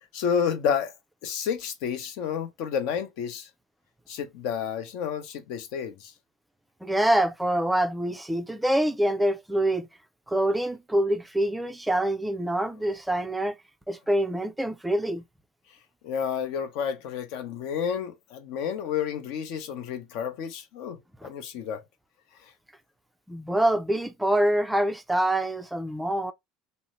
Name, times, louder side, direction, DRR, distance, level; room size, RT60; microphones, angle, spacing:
voice 1, 0.1-0.9 1.2-3.5 4.1-6.1 16.0-21.8 22.4-22.5, left 7 dB, 70° left, 0.6 m, -30 dB
voice 2, 6.8-9.9 10.3-13.6 13.9-15.2 21.2-21.3 23.3-26.3, right 1 dB, 5° right, 0.3 m, -25 dB
2.7 x 2.0 x 2.9 m
supercardioid pair, 120°, 0 cm